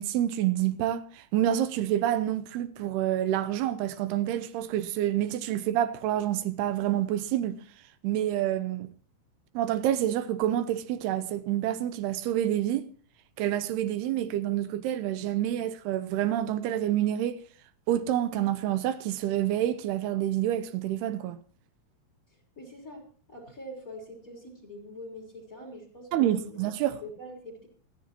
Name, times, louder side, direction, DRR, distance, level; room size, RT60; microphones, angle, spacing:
voice 1, 0.0-7.6 8.0-8.9 9.5-12.9 13.4-17.4 17.9-21.4 26.1-27.0, right 12 dB, 90° right, 2.9 m, -28 dB
voice 2, 22.3-26.6 26.9-27.7, left 1 dB, 20° left, 3.8 m, -44 dB
28.0 x 10.5 x 2.9 m
omnidirectional pair, 4.5 m